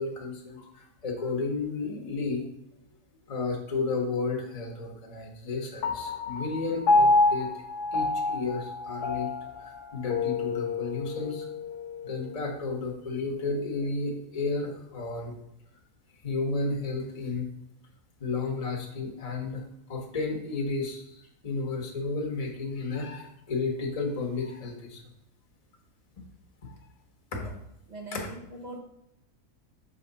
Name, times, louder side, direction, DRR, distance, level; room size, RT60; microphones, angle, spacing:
voice 1, 0.0-2.5 3.3-7.5 7.9-9.3 9.6-11.5 12.0-15.3 16.2-17.5 18.2-19.6 19.9-25.0 26.6-26.7 27.3-27.4 28.1-28.3, left 3 dB, 25° left, 0 dB, 1.0 m, -32 dB
Piano, 5.8-12.5, left 3 dB, 80° left, 1.3 m, -28 dB
voice 2, 27.9-28.8, right 2 dB, 35° right, 0 dB, 0.9 m, -41 dB
6.4 x 4.2 x 4.0 m, 0.79 s
omnidirectional pair, 1.7 m